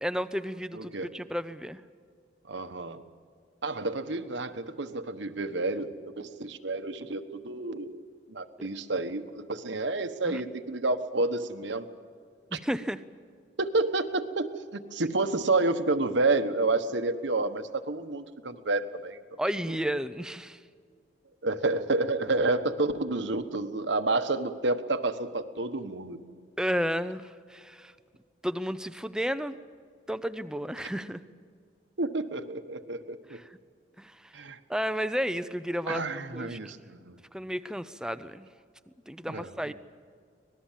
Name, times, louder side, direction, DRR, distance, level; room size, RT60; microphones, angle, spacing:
voice 1, 0.0-1.8 8.6-8.7 10.2-10.4 12.5-13.0 19.4-20.6 26.6-27.9 28.4-29.5 30.1-31.2 33.3-33.5 34.0-34.4 34.7-36.0 36.3-36.6 37.3-38.5 39.1-39.7, equal, 5° right, 12 dB, 0.6 m, -32 dB
voice 2, 0.7-1.1 2.5-3.0 3.6-8.0 8.3-11.9 12.5-12.6 13.6-19.2 21.4-26.2 32.0-33.4 34.3-34.6 35.9-37.2 39.3-39.7, right 2 dB, 80° right, 9 dB, 1.2 m, -29 dB
25.0 x 19.0 x 7.5 m, 2.1 s
head